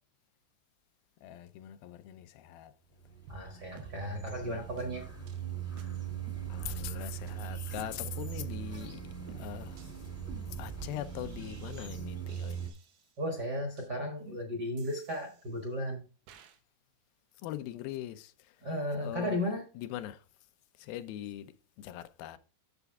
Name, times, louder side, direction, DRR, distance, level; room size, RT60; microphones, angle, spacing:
voice 1, 1.2-2.7 6.5-9.9 10.5-12.7 17.4-18.6 19.0-19.4 19.8-20.2 20.8-22.4, left 13 dB, 85° left, 2.5 m, -42 dB
sound 1, 3.0-12.7, right 8 dB, 10° left, 0.9 m, -40 dB
voice 2, 3.3-5.1 13.2-16.0 18.6-19.6, equal, 45° right, 1.3 m, -35 dB
sound 2, 3.3-3.5 3.8-4.0 4.3-4.4 4.8-4.9 5.3-5.4 5.8-5.9 6.3-6.9 7.3-7.4 7.8-8.4 8.8-8.9 9.3-11.9 12.3-13.2 13.8-13.9 14.8-15.7 16.3-16.6, right 7 dB, 90° right, 2.9 m, -55 dB
8.1 x 6.9 x 3.5 m
omnidirectional pair, 4.3 m